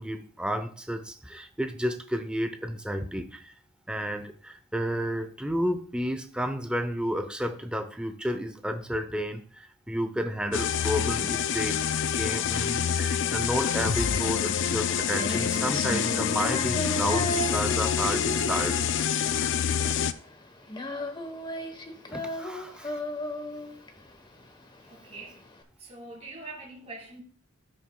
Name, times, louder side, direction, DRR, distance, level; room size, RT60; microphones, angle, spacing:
voice 1, 0.0-3.5 3.9-11.8 12.1-18.8 22.1-23.0, equal, 5° right, 0.7 m, -31 dB
sound 1, 10.5-20.1, left 8 dB, 60° left, 0.5 m, -27 dB
Female singing, 14.9-25.6, left 1 dB, 20° left, 1.1 m, -35 dB
voice 2, 24.8-25.4 25.8-27.2, right 3 dB, 30° right, 1.7 m, -43 dB
15.5 x 6.3 x 2.3 m
head